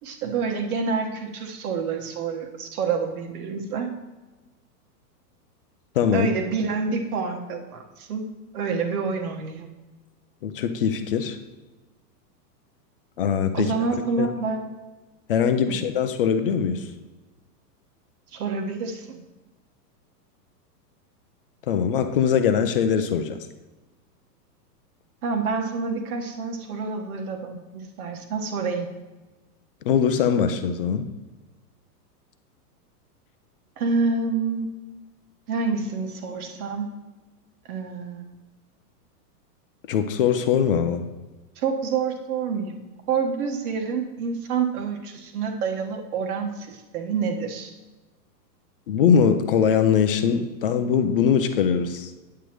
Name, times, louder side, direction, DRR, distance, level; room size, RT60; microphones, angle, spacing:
voice 1, 0.0-3.9 6.1-9.7 13.5-14.6 15.7-15.8 18.3-19.2 25.2-28.9 33.8-34.7 35.5-36.9 37.7-38.4 41.6-42.7 43.1-47.7, right 5 dB, 65° right, 4 dB, 1.4 m, -28 dB
voice 2, 6.0-6.3 10.4-11.4 13.2-13.7 14.0-14.3 15.3-16.9 21.7-23.5 29.8-31.1 39.9-41.1 48.9-52.1, left 7 dB, 40° left, 8 dB, 0.4 m, -22 dB
9.3 x 8.1 x 3.0 m, 1.2 s
supercardioid pair, 160°, 48 cm